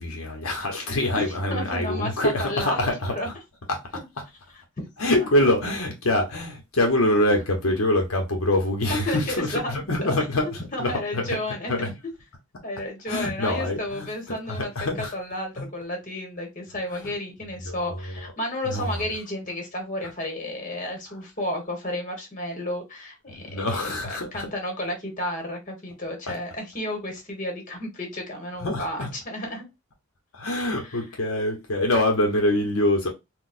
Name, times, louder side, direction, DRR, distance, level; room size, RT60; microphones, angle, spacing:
voice 1, 0.0-3.3 3.7-3.8 5.0-11.4 11.7-11.9 13.1-14.1 14.5-15.1 15.6-15.7 16.9-17.0 17.6-18.3 18.6-19.0 23.3-24.5 28.6-29.1 30.3-33.1, left 1 dB, 75° left, 0.9 m, -25 dB
voice 2, 1.1-3.3 3.9-4.0 4.8-4.9 5.1-5.7 8.9-10.1 10.7-11.9 12.6-14.7 15.0-29.6 30.6-31.0, left 1 dB, 40° left, 1.4 m, -32 dB
4.0 x 2.3 x 2.5 m
head